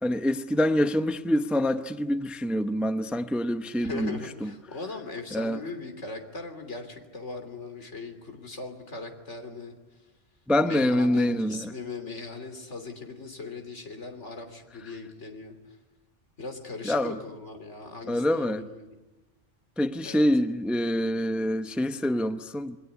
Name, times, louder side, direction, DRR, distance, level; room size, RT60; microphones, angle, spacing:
voice 1, 0.0-4.5 5.3-5.6 10.5-11.7 16.8-17.1 18.1-18.6 19.8-22.8, left 1 dB, ahead, 0.7 m, -26 dB
voice 2, 3.8-9.8 10.6-15.8 16.4-19.0 20.0-20.3, left 3 dB, 75° left, 3.4 m, -39 dB
28.0 x 21.5 x 9.6 m
omnidirectional pair, 1.2 m